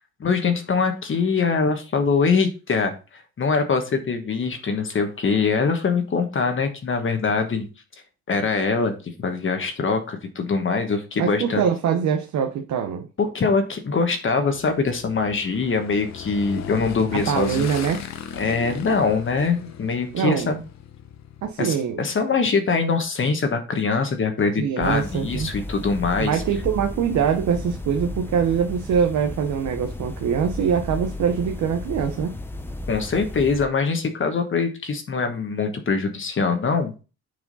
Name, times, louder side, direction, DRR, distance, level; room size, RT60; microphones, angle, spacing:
voice 1, 0.2-7.6 8.3-11.6 13.2-17.7 18.4-20.6 21.6-26.4 32.9-37.0, left 4 dB, 40° left, 6 dB, 1.2 m, -23 dB
voice 2, 11.2-13.1 17.1-18.0 20.1-20.5 21.4-22.0 24.6-25.5 26.2-32.3, right 7 dB, 70° right, 4 dB, 0.9 m, -23 dB
Motorcycle / Engine, 14.5-21.5, left 9 dB, 60° left, 0.9 m, -37 dB
sound 1, 24.8-33.6, left 1 dB, 5° left, 0.8 m, -34 dB
6.4 x 4.8 x 4.0 m, 0.32 s
cardioid pair, 90°, 30 cm